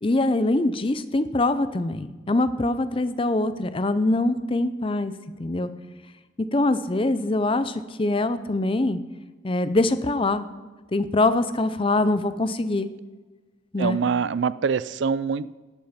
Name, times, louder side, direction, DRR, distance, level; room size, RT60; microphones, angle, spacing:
voice 1, 0.0-5.1 5.4-5.7 6.5-9.0 9.4-10.5 10.9-12.9 13.7-14.0, left 2 dB, 30° left, 12 dB, 0.5 m, -23 dB
voice 2, 13.8-15.6, right 6 dB, 70° right, 17 dB, 0.4 m, -24 dB
12.0 x 8.8 x 5.7 m, 1.3 s
head